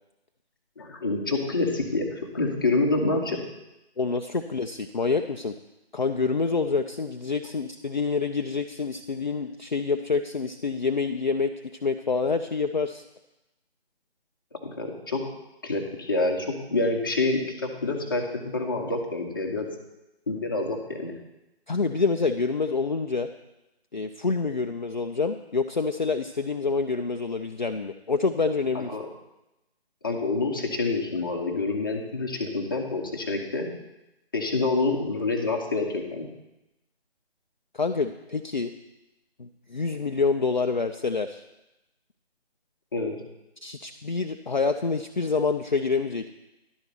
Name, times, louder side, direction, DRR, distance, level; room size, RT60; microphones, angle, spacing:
voice 1, 0.8-3.4 14.5-15.2 15.6-19.7 20.3-21.1 28.7-29.1 30.0-33.7 34.3-36.3 42.9-43.1, left 3 dB, 20° left, 0 dB, 0.8 m, -27 dB
voice 2, 4.0-5.5 5.9-11.5 11.8-13.0 21.7-23.3 23.9-28.9 37.7-38.7 39.4-41.4 43.6-46.3, left 4 dB, 45° left, 5 dB, 0.4 m, -27 dB
11.0 x 4.5 x 6.7 m, 0.96 s
figure-of-eight pair, 160°, 32 cm